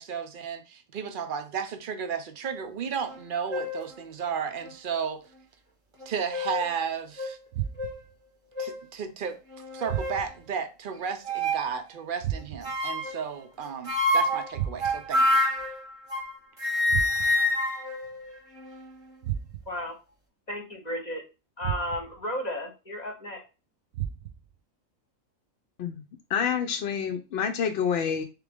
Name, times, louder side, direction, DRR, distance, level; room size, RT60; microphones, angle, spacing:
voice 1, 0.0-5.2 6.1-7.4 8.6-9.4 9.7-15.4, right 6 dB, 60° right, 0.5 m, -33 dB
sound 1, 3.1-3.2 3.5-3.9 4.6-4.7 6.0-6.8 7.2-7.3 7.8-8.0 8.6-8.8 9.5-10.2 11.2-11.7 12.6-13.2 13.9-16.3 16.6-18.9, left 1 dB, 30° right, 0.9 m, -28 dB
sound 2, 7.5-8.2 9.9-10.5 12.2-12.8 14.5-15.2 16.9-17.5 19.2-19.9 21.6-22.2 23.9-24.6, right 11 dB, 75° right, 1.0 m, -34 dB
voice 2, 19.7-20.0 20.5-21.2 21.6-23.4, left 1 dB, 35° left, 0.9 m, -33 dB
voice 3, 26.3-28.2, left 7 dB, 65° left, 0.7 m, -27 dB
3.7 x 3.3 x 3.4 m
omnidirectional pair, 1.4 m